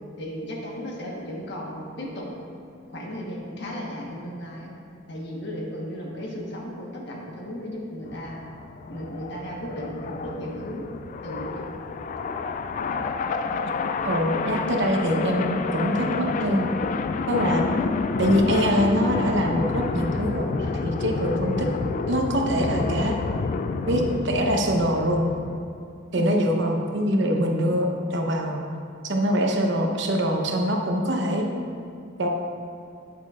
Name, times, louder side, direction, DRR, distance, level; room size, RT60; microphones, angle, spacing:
voice 1, 0.2-2.3 2.9-4.7 5.1-8.4 8.9-10.9 11.2-11.8 26.2-26.3, equal, 65° left, -2 dB, 1.3 m, -35 dB
sound 1, 8.1-25.6, left 4 dB, 40° left, 0.3 m, -29 dB
voice 2, 14.0-16.7 17.3-17.6 18.2-21.7 22.1-23.2 23.9-25.3 26.1-28.6 29.0-31.5 32.2-32.3, equal, 65° right, 1 dB, 0.9 m, -24 dB
8.9 x 8.4 x 2.5 m, 2.4 s
head